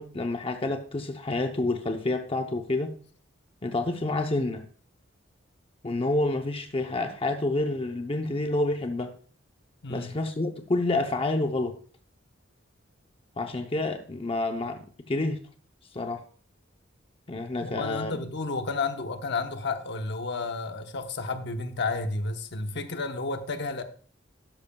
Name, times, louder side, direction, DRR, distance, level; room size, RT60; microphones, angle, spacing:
voice 1, 0.0-2.9 3.6-4.6 5.8-9.1 9.9-11.8 13.4-15.4 15.9-16.2 17.3-18.2, left 2 dB, 30° left, 0.7 m, -28 dB
voice 2, 17.6-23.8, left 3 dB, 60° left, 1.0 m, -31 dB
12.0 x 10.5 x 2.3 m
head